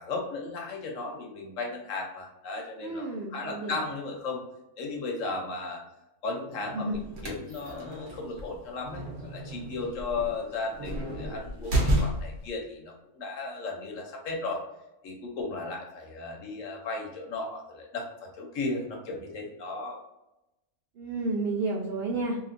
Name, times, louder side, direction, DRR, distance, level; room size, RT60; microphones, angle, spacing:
voice 1, 0.0-3.1 3.3-4.4 4.8-5.8 6.2-14.6 15.0-20.0, left 3 dB, 65° left, 1 dB, 1.0 m, -35 dB
voice 2, 2.8-3.8 6.7-7.0 21.0-22.4, right 2 dB, 75° right, -1 dB, 0.5 m, -31 dB
sound 1, 6.9-12.5, right 1 dB, 55° right, 1.0 m, -31 dB
3.1 x 2.9 x 2.5 m, 0.93 s
omnidirectional pair, 1.6 m